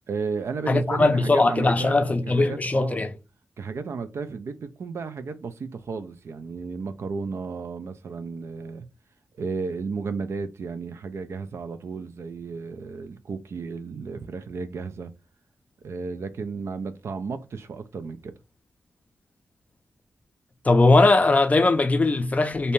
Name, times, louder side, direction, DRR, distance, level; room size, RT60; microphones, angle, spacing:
voice 1, 0.1-3.1 3.6-8.9 9.4-15.1 15.8-18.3, right 4 dB, 70° right, 0.4 m, -33 dB
voice 2, 0.7-3.1 20.7-22.7, left 2 dB, 30° left, 0.4 m, -20 dB
2.7 x 2.1 x 3.0 m
cardioid pair, 65°, 5 cm